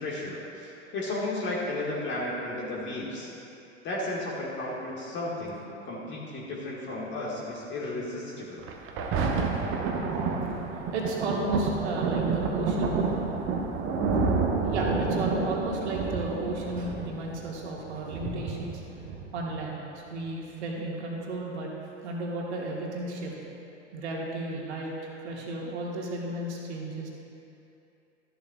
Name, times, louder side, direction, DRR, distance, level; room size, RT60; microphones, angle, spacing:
voice 1, 0.0-3.3 3.8-8.6, left 2 dB, 30° left, -5 dB, 1.8 m, -34 dB
Thunder, 8.6-19.6 20.3-20.4, right 4 dB, 35° right, 1.0 m, -29 dB
voice 2, 10.9-13.0 14.6-18.8 19.3-19.8 20.1-21.7 22.0-23.3 23.9-24.9 25.2-27.1, right 2 dB, 65° right, -2 dB, 1.9 m, -33 dB
13.5 x 11.5 x 2.4 m, 2.8 s
figure-of-eight pair, 90°, 37 cm